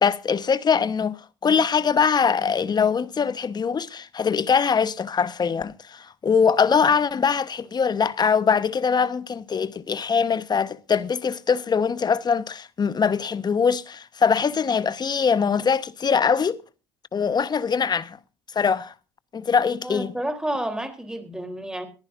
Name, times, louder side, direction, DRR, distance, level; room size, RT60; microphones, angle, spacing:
voice 1, 0.0-16.6 17.1-18.2 18.5-18.9 19.3-20.1, left 6 dB, 30° left, 1.1 m, -22 dB
voice 2, 19.8-21.9, right 1 dB, 5° right, 3.5 m, -30 dB
22.5 x 14.5 x 2.6 m
hypercardioid pair, 65°, 14 cm